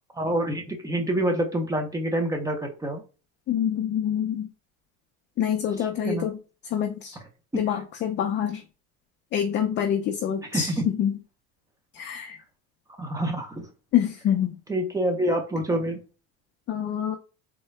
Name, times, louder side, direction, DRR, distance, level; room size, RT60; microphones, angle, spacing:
voice 1, 0.1-3.0 6.0-6.3 10.5-10.8 13.0-13.7 14.7-16.0, right 1 dB, 10° right, 5 dB, 0.6 m, -27 dB
voice 2, 3.5-4.5 5.4-6.4 6.7-7.2 7.5-8.6 9.3-11.1 11.9-12.4 13.9-14.6 16.7-17.2, left 9 dB, 35° left, 4 dB, 0.4 m, -26 dB
3.6 x 2.2 x 3.1 m, 0.33 s
cardioid pair, 140°, 33 cm